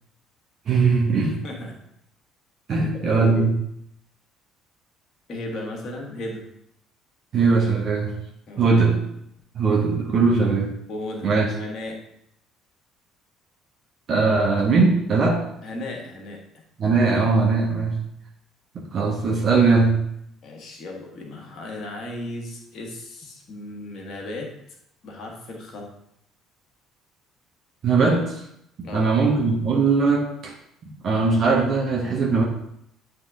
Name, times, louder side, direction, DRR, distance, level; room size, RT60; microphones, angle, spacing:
voice 1, 0.7-1.4 2.7-3.6 7.3-8.2 8.6-9.0 9.5-10.7 11.2-11.5 14.1-15.4 16.8-18.0 18.7-20.1 27.8-28.4 28.8-30.5 31.0-32.4, right 4 dB, 45° right, -2 dB, 1.2 m, -20 dB
voice 2, 1.4-1.8 2.7-3.5 5.3-6.4 8.5-8.7 10.9-12.0 15.6-16.4 17.7-17.9 20.4-24.5 25.0-25.9 28.8-29.1, left 1 dB, 50° left, 0 dB, 1.6 m, -35 dB
9.2 x 3.6 x 3.6 m, 0.76 s
figure-of-eight pair, 50°, 0 cm